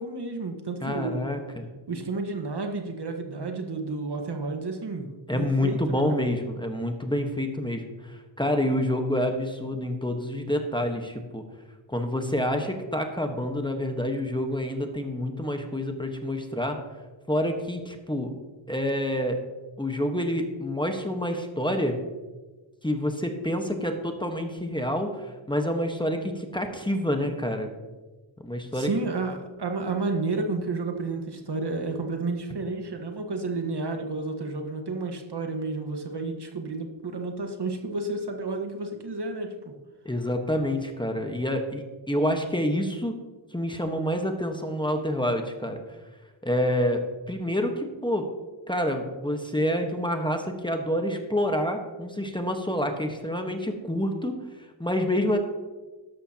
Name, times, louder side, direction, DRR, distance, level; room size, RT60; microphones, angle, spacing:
voice 1, 0.0-1.3 1.9-6.2 28.7-39.7, right 3 dB, 55° right, 4 dB, 1.5 m, -31 dB
voice 2, 0.8-1.7 5.3-11.4 11.9-16.8 17.3-18.3 18.7-19.4 19.8-22.0 22.8-27.7 28.4-28.9 40.0-43.2 43.5-45.8 46.4-48.2 48.7-54.3 54.8-55.4, left 1 dB, 10° left, 4 dB, 1.3 m, -28 dB
13.0 x 11.0 x 2.9 m, 1.2 s
cardioid pair, 65°, 49 cm